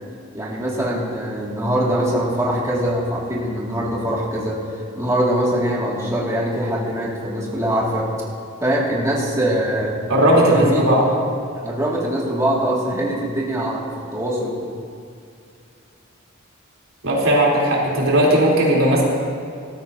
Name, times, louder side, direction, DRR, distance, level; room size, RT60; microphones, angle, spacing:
voice 1, 0.3-4.6 5.0-8.1 8.6-10.0 10.5-10.8 11.6-13.8 14.1-14.6, right 1 dB, 15° right, -6 dB, 2.2 m, -22 dB
voice 2, 10.1-11.0 17.0-19.0, right 1 dB, 85° right, -4 dB, 3.5 m, -16 dB
19.0 x 13.5 x 2.8 m, 2.4 s
head